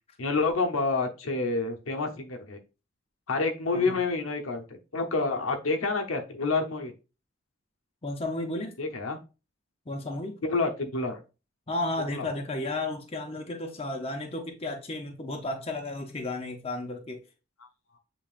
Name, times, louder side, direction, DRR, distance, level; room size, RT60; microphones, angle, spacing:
voice 1, 0.2-2.6 3.3-6.9 8.8-9.2 10.4-11.2 12.1-12.3, left 3 dB, 80° left, 0.8 m, -28 dB
voice 2, 8.0-8.7 9.9-10.4 11.7-17.2, left 2 dB, 30° left, 0.6 m, -33 dB
7.2 x 3.0 x 2.4 m
head